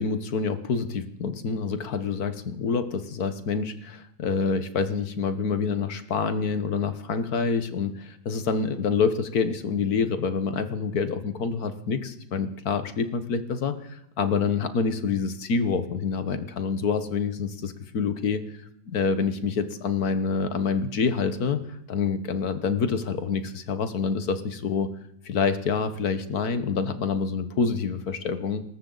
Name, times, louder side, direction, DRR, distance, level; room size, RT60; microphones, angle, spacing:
voice 1, 0.0-18.4 18.9-21.6 21.9-24.9 25.3-28.6, left 5 dB, 65° left, 10 dB, 1.7 m, -27 dB
25.0 x 13.5 x 4.0 m, 0.76 s
omnidirectional pair, 1.8 m